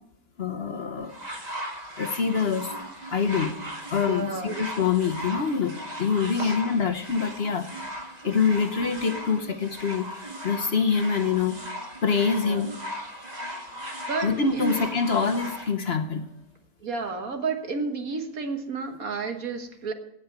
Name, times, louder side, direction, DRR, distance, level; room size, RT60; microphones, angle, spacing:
voice 1, 0.4-1.1 2.0-2.7 3.1-3.5 3.9-7.7 8.2-11.6 12.0-12.7 14.2-16.2, left 5 dB, 45° left, 6 dB, 1.1 m, -25 dB
sound 1, 1.1-15.7 16.6-16.7, equal, 25° right, 1.9 m, -37 dB
voice 2, 4.1-4.5 6.4-6.5 12.4-12.7 14.1-14.9 16.8-19.9, right 4 dB, 70° right, 5 dB, 1.8 m, -31 dB
18.0 x 6.0 x 7.9 m, 0.79 s
omnidirectional pair, 1.6 m